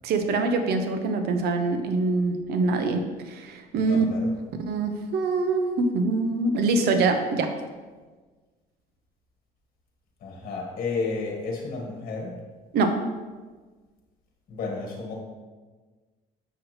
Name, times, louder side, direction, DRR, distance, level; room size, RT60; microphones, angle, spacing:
voice 1, 0.0-4.0 4.7-7.5 12.7-13.0, right 3 dB, 70° right, 6 dB, 0.9 m, -24 dB
voice 2, 3.8-4.3 10.2-12.4 14.5-15.1, left 4 dB, 55° left, 0 dB, 1.6 m, -32 dB
6.9 x 6.2 x 3.2 m, 1.4 s
cardioid pair, 110°, 17 cm